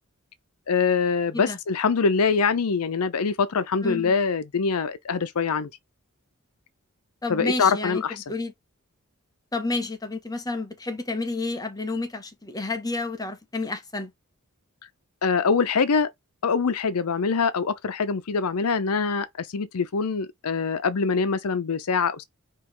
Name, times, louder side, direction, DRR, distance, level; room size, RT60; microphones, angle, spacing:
voice 1, 0.7-5.7 7.3-8.2 15.2-16.1 16.4-22.2, left 5 dB, 85° left, 0.6 m, -24 dB
voice 2, 3.8-4.1 7.2-8.0 8.3-8.5 9.5-14.1, left 3 dB, 15° left, 0.9 m, -30 dB
4.7 x 3.0 x 3.3 m
head